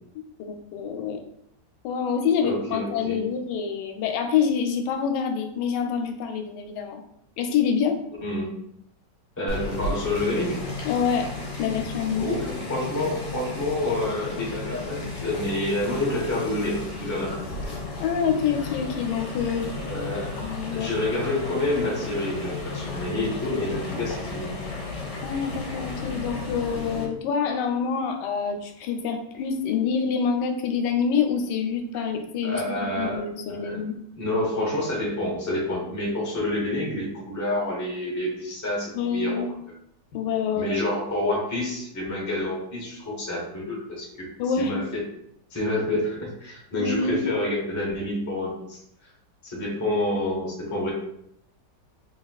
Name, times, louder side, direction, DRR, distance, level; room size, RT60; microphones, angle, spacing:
voice 1, 0.4-1.2 1.8-7.0 7.4-8.0 10.8-11.3 11.6-12.3 18.0-19.7 20.4-20.9 25.2-33.9 38.9-39.5 40.1-40.8 44.4-44.8 46.7-47.2, left 6 dB, 85° left, 5 dB, 1.2 m, -26 dB
voice 2, 2.4-3.2 8.2-8.5 9.4-10.7 12.2-17.4 19.8-20.4 20.7-24.5 32.4-33.2 33.5-33.8 34.2-39.5 40.6-44.3 44.6-45.0 45.5-48.8 49.4-50.9, left 1 dB, 15° left, -4 dB, 0.7 m, -28 dB
sound 1, 9.5-27.0, left 3 dB, 60° left, 1.3 m, -34 dB
4.0 x 3.4 x 2.3 m, 0.73 s
omnidirectional pair, 1.9 m